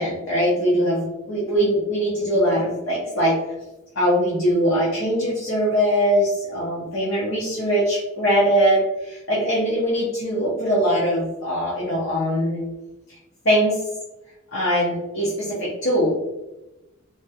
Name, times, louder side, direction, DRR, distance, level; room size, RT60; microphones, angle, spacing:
voice 1, 0.0-3.4 3.9-12.7 13.4-13.8 14.5-16.1, equal, 55° left, -6 dB, 0.7 m, -21 dB
3.4 x 2.3 x 2.7 m, 0.99 s
head